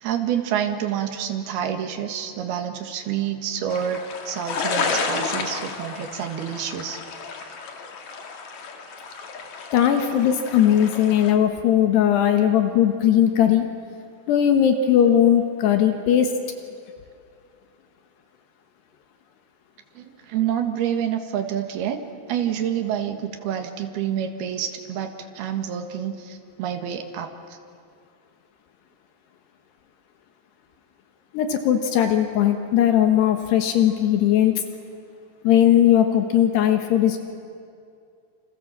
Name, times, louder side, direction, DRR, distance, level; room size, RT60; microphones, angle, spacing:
voice 1, 0.0-7.0 7.4-7.5 20.0-22.0 22.3-27.6, right 9 dB, 70° right, 5 dB, 3.6 m, -28 dB
sound 1, 3.7-11.4, left 5 dB, 50° left, 2.8 m, -31 dB
voice 2, 9.7-13.7 14.3-16.3 31.3-34.5 35.4-37.2, left 10 dB, 75° left, 6 dB, 3.4 m, -18 dB
29.0 x 27.5 x 7.5 m, 2.4 s
omnidirectional pair, 4.9 m